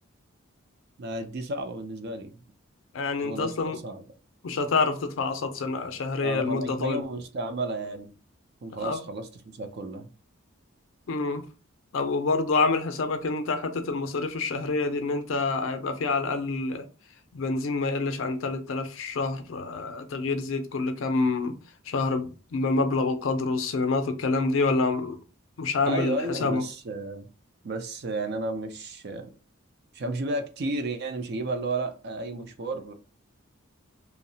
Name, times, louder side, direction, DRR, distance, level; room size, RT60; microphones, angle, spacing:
voice 1, 1.0-2.4 3.2-4.0 6.2-8.1 8.6-10.1 25.8-27.3 27.6-29.3 29.9-32.9, right 2 dB, 50° right, 0.4 m, -32 dB
voice 2, 2.9-3.8 4.4-7.0 8.8-9.0 11.1-11.4 11.9-16.9 17.3-21.5 21.9-25.2 25.6-26.6, left 3 dB, 65° left, 0.4 m, -27 dB
2.7 x 2.0 x 2.7 m
head